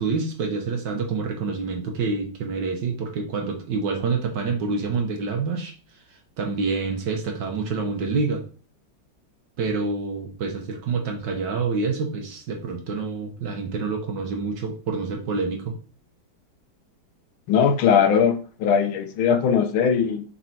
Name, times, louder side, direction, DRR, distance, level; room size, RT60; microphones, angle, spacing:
voice 1, 0.0-5.7 6.4-8.4 9.6-15.8, right 4 dB, 65° right, 2 dB, 1.6 m, -27 dB
voice 2, 17.5-20.2, left 7 dB, 90° left, 8 dB, 1.7 m, -20 dB
6.9 x 4.2 x 4.4 m, 0.39 s
omnidirectional pair, 2.2 m